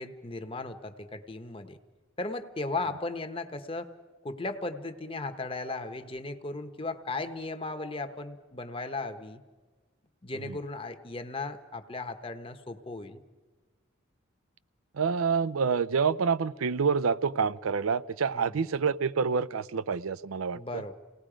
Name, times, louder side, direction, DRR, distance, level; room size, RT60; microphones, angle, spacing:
voice 1, 0.0-1.8 2.2-3.9 4.2-9.4 10.2-13.2 18.3-18.6 20.5-20.9, left 3 dB, 25° left, 8 dB, 1.0 m, -36 dB
voice 2, 14.9-20.8, right 5 dB, 90° right, 15 dB, 0.5 m, -27 dB
28.5 x 18.5 x 5.0 m, 1.3 s
head